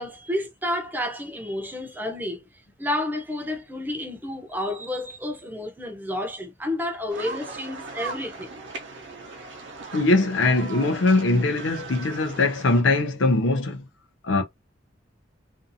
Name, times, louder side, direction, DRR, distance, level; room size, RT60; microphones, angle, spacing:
voice 1, 0.0-2.5 2.8-8.6, left 1 dB, 10° right, 0.6 m, -30 dB
sound 1, 7.1-12.8, right 3 dB, 75° right, 0.7 m, -38 dB
voice 2, 9.9-13.8 14.2-14.4, left 2 dB, 75° left, 0.5 m, -21 dB
2.6 x 2.4 x 2.6 m
head